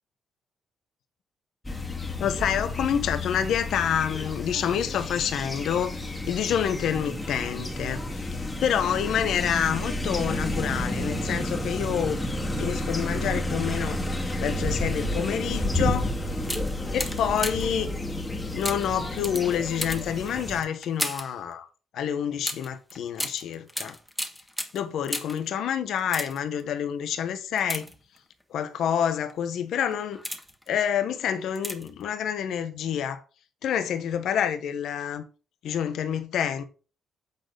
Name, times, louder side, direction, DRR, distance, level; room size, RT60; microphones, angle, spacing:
sound 1, 1.6-20.6, left 1 dB, 20° left, 2.0 m, -31 dB
voice 1, 2.2-6.0 6.3-8.3 8.6-12.2 12.6-14.0 14.4-16.1 16.9-17.9 18.5-21.7 21.9-24.0 24.7-27.9 28.5-30.2 30.7-33.2 33.6-35.2 35.6-36.6, left 8 dB, 75° left, 1.1 m, -28 dB
sound 2, 15.9-16.0 16.4-17.8 18.6-21.4 22.4-25.5 26.0-26.6 27.6-28.4 29.1-29.3 29.9-30.7 31.6-32.0 32.3-32.4, left 1 dB, 5° left, 1.4 m, -35 dB
8.7 x 4.1 x 5.1 m
cardioid pair, 90°, 0 cm